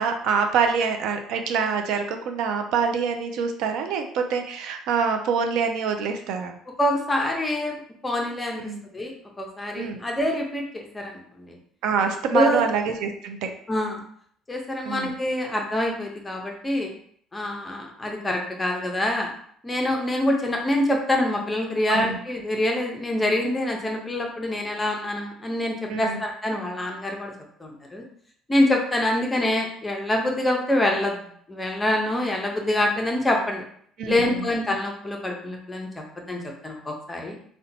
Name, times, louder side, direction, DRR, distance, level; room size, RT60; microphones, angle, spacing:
voice 1, 0.0-6.6 8.6-8.8 9.7-10.0 11.8-13.5 14.9-15.1 21.9-22.2 25.9-26.2 34.0-34.5, right 6 dB, 65° right, 5 dB, 0.4 m, -25 dB
voice 2, 6.8-7.7 8.0-11.6 12.3-12.6 13.7-14.0 14.5-16.9 17.3-19.3 19.6-27.3 27.6-28.0 28.5-33.6 34.1-37.3, left 1 dB, 10° left, 1 dB, 0.5 m, -25 dB
2.7 x 2.1 x 4.0 m, 0.62 s
cardioid pair, 160°, 0 cm